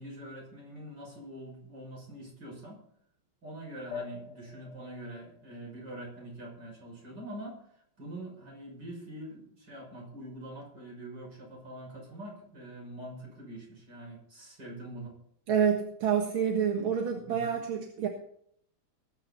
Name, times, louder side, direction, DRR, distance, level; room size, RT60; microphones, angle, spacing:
voice 1, 0.0-2.8 3.4-15.1 17.2-17.6, right 1 dB, 55° right, 0 dB, 6.8 m, -44 dB
sound 1, 3.9-6.9, left 5 dB, 60° left, 1.8 m, -46 dB
voice 2, 15.5-18.1, right 8 dB, 80° right, 2 dB, 2.4 m, -28 dB
20.0 x 9.7 x 4.1 m, 0.66 s
omnidirectional pair, 2.2 m